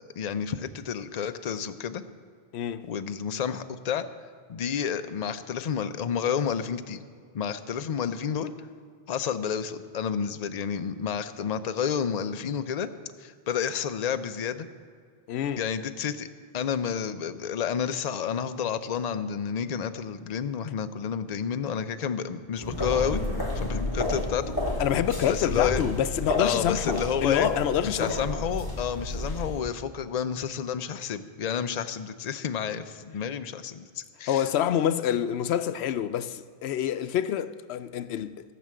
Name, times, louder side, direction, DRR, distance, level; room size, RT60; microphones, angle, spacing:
voice 1, 0.0-2.0 2.8-4.1 4.5-7.0 7.3-8.5 9.1-12.9 13.2-14.7 15.6-16.3 16.5-23.2 23.6-24.8 25.3-25.8 26.4-27.5 27.8-34.5, left 7 dB, 45° left, 0.6 m, -30 dB
voice 2, 2.5-2.8 15.3-15.6 24.8-28.3 34.3-38.3, left 10 dB, 90° left, 0.8 m, -27 dB
sound 1, 22.6-29.6, left 1 dB, 20° left, 2.1 m, -31 dB
16.0 x 6.0 x 7.7 m
omnidirectional pair, 1.1 m